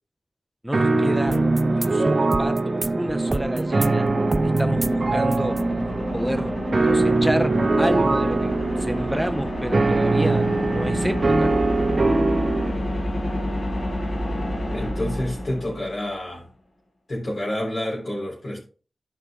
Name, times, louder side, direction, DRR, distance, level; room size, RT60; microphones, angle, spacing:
voice 1, 0.6-4.1 4.4-5.7 6.1-11.5, right 1 dB, 5° right, 0.7 m, -29 dB
sound 1, 0.7-12.7, right 3 dB, 50° right, 1.4 m, -23 dB
sound 2, 1.3-9.2, right 2 dB, 35° right, 0.3 m, -28 dB
sound 3, 3.1-16.1, left 1 dB, 65° left, 4.5 m, -29 dB
voice 2, 14.7-16.4 17.1-18.6, left 1 dB, 50° left, 3.5 m, -28 dB
12.5 x 5.1 x 3.6 m
wide cardioid pair, 100°, 0 cm